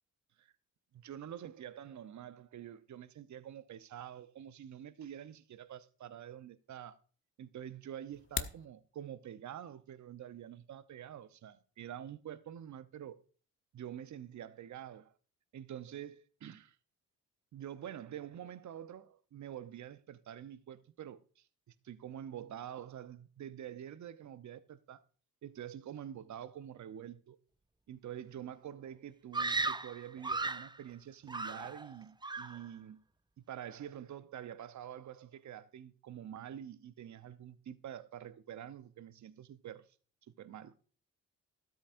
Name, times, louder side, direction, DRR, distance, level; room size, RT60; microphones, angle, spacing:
voice 1, 0.9-7.0 7.4-13.2 13.7-15.1 15.5-16.8 17.5-25.0 25.4-27.4 27.9-33.0 33.4-39.9 40.3-40.8, right 10 dB, 45° right, 0.9 m, -47 dB
sound 1, 8.1-8.7, left 6 dB, 30° left, 1.1 m, -38 dB
Screaming, 29.3-30.8 31.3-31.9 32.2-32.6, right 3 dB, 10° right, 0.7 m, -36 dB
13.5 x 12.5 x 2.6 m
hypercardioid pair, 45°, 41 cm